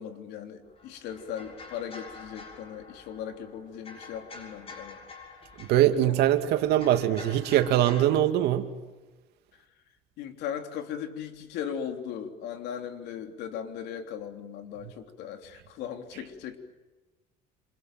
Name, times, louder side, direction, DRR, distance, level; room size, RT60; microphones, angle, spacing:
voice 1, 0.0-5.0 6.0-6.1 10.2-16.6, left 8 dB, 75° left, 6 dB, 3.5 m, -38 dB
sound 1, 0.6-8.1, left 4 dB, 35° left, 6.9 m, -47 dB
voice 2, 5.6-8.7, right 12 dB, 75° right, 7 dB, 2.4 m, -22 dB
28.0 x 26.5 x 7.7 m, 1.2 s
cardioid pair, 130°, 17 cm